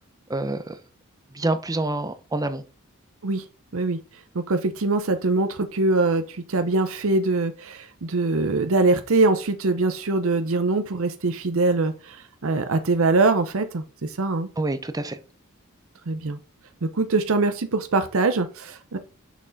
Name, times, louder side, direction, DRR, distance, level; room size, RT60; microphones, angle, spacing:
voice 1, 0.3-0.8 1.3-2.6 14.6-15.2, right 2 dB, 15° right, 11 dB, 0.6 m, -27 dB
voice 2, 4.3-14.5 16.1-16.4 16.8-19.0, right 3 dB, 65° right, 9 dB, 0.7 m, -23 dB
6.4 x 6.2 x 4.0 m, 0.35 s
head